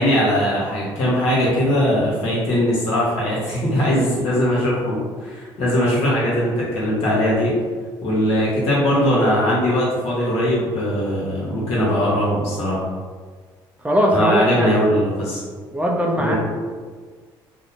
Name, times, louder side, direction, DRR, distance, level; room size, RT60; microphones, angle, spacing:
voice 1, 0.0-7.5 8.0-12.9 14.1-15.4 16.2-16.4, equal, 75° left, -7 dB, 1.0 m, -20 dB
voice 2, 13.8-14.7 15.7-16.4, equal, 10° right, -1 dB, 0.5 m, -19 dB
2.7 x 2.0 x 2.7 m, 1.5 s
hypercardioid pair, 55°, 11 cm